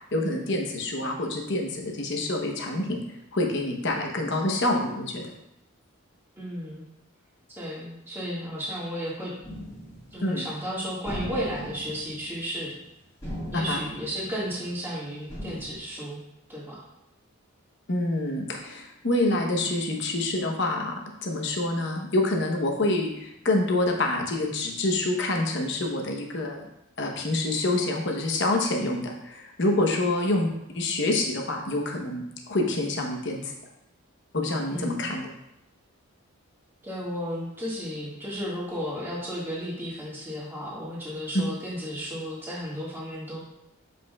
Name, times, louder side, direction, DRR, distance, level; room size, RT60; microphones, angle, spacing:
voice 1, 0.1-3.0 3.3-5.2 10.2-10.5 13.5-13.8 17.9-20.9 21.2-26.7 27.0-30.5 30.7-32.2 32.5-33.5 34.3-35.3, left 2 dB, 55° left, 2 dB, 0.9 m, -27 dB
voice 2, 6.4-6.8 7.6-9.3 10.1-12.7 13.5-16.2 16.5-16.8 29.9-30.1 34.7-35.1 36.8-43.4, equal, 10° right, -7 dB, 1.8 m, -33 dB
sound 1, 9.4-10.6 11.1-12.9 13.2-14.9 15.3-15.8, equal, 15° left, 1.8 m, -39 dB
7.7 x 5.2 x 2.3 m, 0.85 s
head